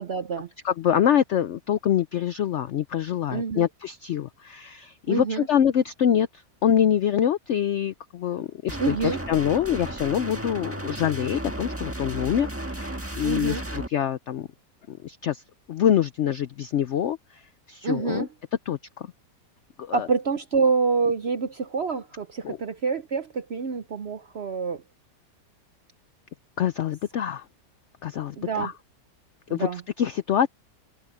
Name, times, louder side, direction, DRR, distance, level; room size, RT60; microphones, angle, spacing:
voice 1, 0.0-0.5 3.3-3.7 5.1-5.5 8.8-9.2 13.2-13.6 17.8-18.3 19.9-24.8 28.4-28.7 29.5-29.8, right 5 dB, 55° right, 0.7 m, -27 dB
voice 2, 0.6-14.5 14.9-15.4 15.7-18.3 18.7-19.1 19.8-20.1 22.4-22.6 26.6-27.5 28.0-28.7 29.5-30.5, left 9 dB, 75° left, 0.6 m, -25 dB
sound 1, 8.7-13.9, right 1 dB, 10° right, 1.3 m, -34 dB
omnidirectional pair, 1.8 m